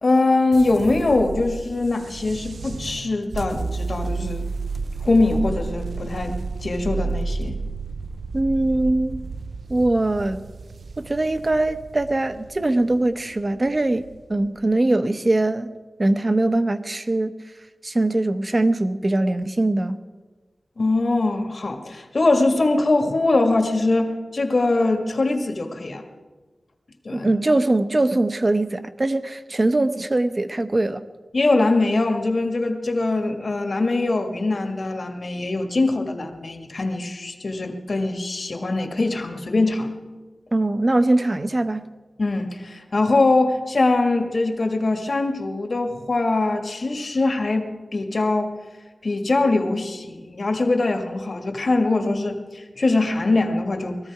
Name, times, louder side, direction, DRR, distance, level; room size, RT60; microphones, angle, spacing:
voice 1, 0.0-4.4 5.0-6.3 6.6-7.6 20.8-26.0 27.0-27.3 31.3-39.9 42.2-47.7 47.9-48.5 49.0-54.0, left 2 dB, 65° left, 4 dB, 1.7 m, -22 dB
sound 1, 0.5-14.7, right 4 dB, 85° right, 0.5 m, -32 dB
voice 2, 8.3-9.2 9.7-10.4 11.0-15.7 16.0-17.3 17.8-20.0 27.1-31.0 40.5-41.9, right 2 dB, 40° right, 10 dB, 0.8 m, -22 dB
20.5 x 14.0 x 4.8 m, 1.3 s
wide cardioid pair, 65°, 0 cm